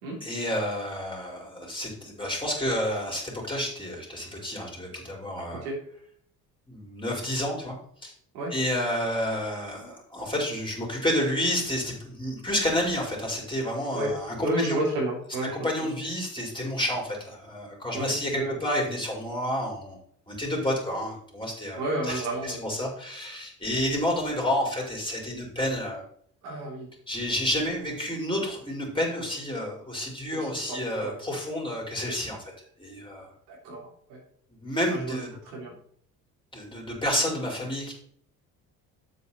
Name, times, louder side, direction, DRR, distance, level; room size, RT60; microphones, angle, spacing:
voice 1, 0.2-5.6 6.7-7.8 8.0-8.1 8.5-14.8 15.5-20.0 20.3-26.0 27.1-32.4 32.8-33.3 34.6-35.3 36.5-37.9, left 1 dB, 10° left, -2 dB, 4.7 m, -30 dB
voice 2, 14.4-15.6 17.9-18.5 21.8-22.9 26.4-26.9 30.3-31.2 33.5-34.2 34.9-35.2 35.5-35.7, right 1 dB, 75° right, -2 dB, 3.5 m, -31 dB
8.7 x 8.1 x 4.3 m, 0.62 s
figure-of-eight pair, 55°, 46 cm